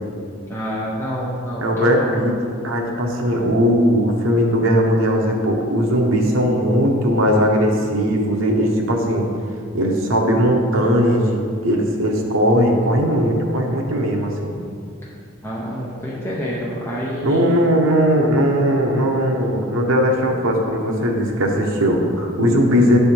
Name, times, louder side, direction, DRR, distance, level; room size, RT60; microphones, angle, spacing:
voice 1, 0.5-2.2 15.4-17.6, equal, 10° left, -7 dB, 0.7 m, -27 dB
voice 2, 1.6-2.3 2.6-9.3 9.7-14.5 17.2-23.0, equal, 75° right, 1 dB, 0.9 m, -18 dB
7.9 x 3.4 x 4.4 m, 2.3 s
head